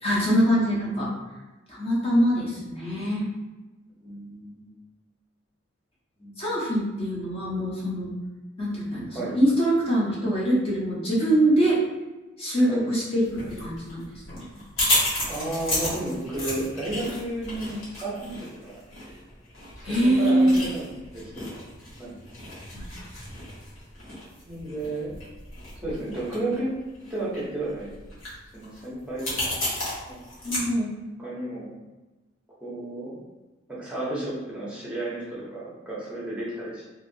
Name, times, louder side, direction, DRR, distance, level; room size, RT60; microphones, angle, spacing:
voice 1, 0.0-1.1 1.7-3.3 6.4-8.1 8.6-11.8 12.4-14.5 19.8-20.6 22.7-22.9 30.4-30.9, right 1 dB, 30° left, -7 dB, 0.7 m, -23 dB
voice 2, 0.6-1.0 4.0-4.8 6.2-6.4 9.1-9.4 12.6-12.9 15.3-19.1 20.2-21.5 22.0-22.2 24.5-25.1 25.8-26.7 27.1-27.9 28.5-29.6 30.1-30.3 31.2-31.8 32.6-33.2 33.7-36.9, right 2 dB, 5° right, -8 dB, 0.7 m, -33 dB
sound 1, 13.3-30.6, left 1 dB, 75° left, 1.3 m, -33 dB
2.8 x 2.7 x 2.6 m, 1.2 s
head